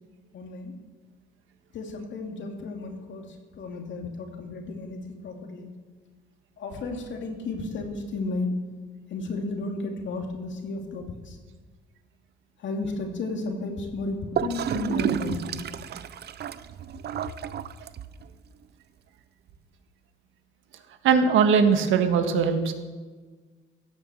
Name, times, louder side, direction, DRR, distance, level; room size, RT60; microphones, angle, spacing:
voice 1, 0.3-0.7 1.7-3.3 3.6-5.7 6.6-8.5 9.1-11.4 12.6-15.5, left 3 dB, 70° left, 3 dB, 2.7 m, -33 dB
Gurgling / Toilet flush, 14.4-18.3, right 9 dB, 55° right, 0.6 m, -31 dB
voice 2, 21.0-22.7, right 6 dB, 85° right, 7 dB, 1.5 m, -21 dB
16.0 x 7.5 x 7.1 m, 1.4 s
cardioid pair, 90°, 20 cm